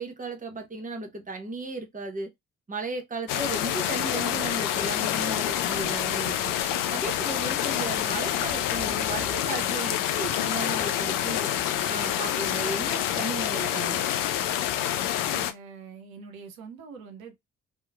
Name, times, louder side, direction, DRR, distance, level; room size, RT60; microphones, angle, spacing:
voice 1, 0.0-2.3 2.7-6.5 6.9-11.5 11.9-14.0, right 2 dB, 20° right, 0.9 m, -35 dB
sound 1, 3.3-15.5, left 11 dB, 55° left, 0.5 m, -27 dB
voice 2, 15.3-17.4, right 5 dB, 85° right, 0.5 m, -44 dB
2.9 x 2.1 x 2.2 m
figure-of-eight pair, 40°, 39 cm